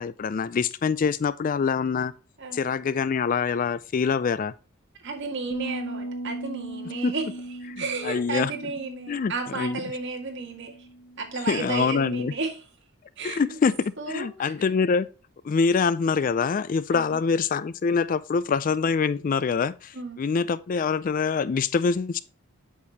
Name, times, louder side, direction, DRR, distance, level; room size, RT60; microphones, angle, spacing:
voice 1, 0.0-2.1 2.5-4.5 7.0-7.1 8.0-8.5 9.1-9.8 11.5-12.3 13.2-13.7 14.1-15.1 15.4-22.2, left 5 dB, 40° left, 0.3 m, -25 dB
voice 2, 5.0-10.9 11.2-12.7 13.2-13.6 14.0-14.7 16.9-17.2 19.9-20.2, right 4 dB, 55° right, 1.9 m, -33 dB
sound 1, 5.5-11.8, right 1 dB, 90° left, 1.5 m, -38 dB
8.4 x 6.7 x 2.8 m
head